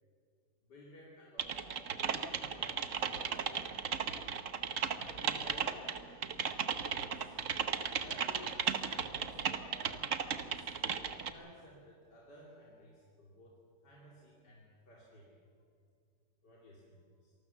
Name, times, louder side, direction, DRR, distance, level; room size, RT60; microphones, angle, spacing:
voice 1, 0.6-4.3 4.8-6.5 6.9-7.4 8.0-15.4 16.4-17.3, left 1 dB, 90° left, -4 dB, 3.5 m, -56 dB
Typing, 1.4-11.3, right 7 dB, 55° right, 1.3 m, -35 dB
26.5 x 19.5 x 7.1 m, 2.2 s
omnidirectional pair, 1.8 m